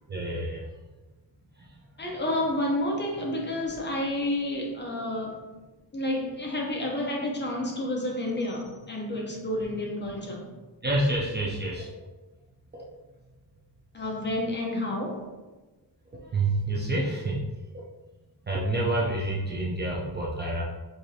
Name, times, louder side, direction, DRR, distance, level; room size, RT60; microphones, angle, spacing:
voice 1, 0.1-0.7 1.6-1.8 10.8-11.9 12.7-12.8 16.1-17.5 17.7-17.8 18.5-20.6, right 2 dB, 25° right, -4 dB, 0.4 m, -28 dB
voice 2, 2.0-5.4 5.9-10.5 13.9-15.3, left 1 dB, 25° left, -1 dB, 0.7 m, -30 dB
4.8 x 2.5 x 2.7 m, 1.2 s
wide cardioid pair, 145°, 42 cm